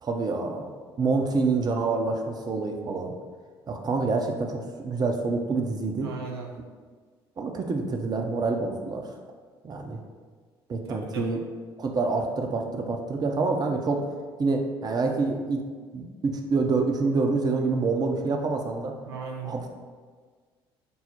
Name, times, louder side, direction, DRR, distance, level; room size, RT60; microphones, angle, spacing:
voice 1, 0.0-0.7 1.0-3.1 3.7-6.1 7.4-9.0 9.6-10.0 10.7-11.4 11.8-14.1 14.4-15.6 15.9-18.9 19.4-19.6, right 3 dB, 30° right, 3 dB, 0.6 m, -27 dB
voice 2, 6.0-6.5 11.1-11.4 19.1-19.7, right 4 dB, 80° right, -1 dB, 0.4 m, -36 dB
5.3 x 2.0 x 4.3 m, 1.5 s
figure-of-eight pair, 50°, 13 cm